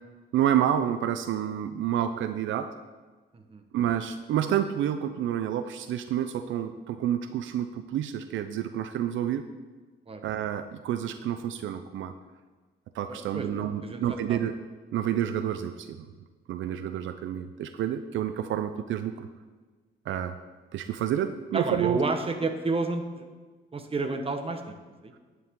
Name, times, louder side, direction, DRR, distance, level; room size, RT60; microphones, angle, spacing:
voice 1, 0.3-2.7 3.7-9.5 10.2-12.1 12.9-14.5 14.9-16.0 16.5-19.3 20.1-20.4 20.7-22.0, right 10 dB, 75° right, 10 dB, 0.6 m, -29 dB
voice 2, 13.1-13.5 13.8-14.0 14.3-14.4 20.1-20.2 21.5-23.3 23.7-25.2, right 3 dB, 30° right, 6 dB, 1.2 m, -31 dB
11.0 x 9.8 x 3.8 m, 1.4 s
cardioid pair, 90°, 20 cm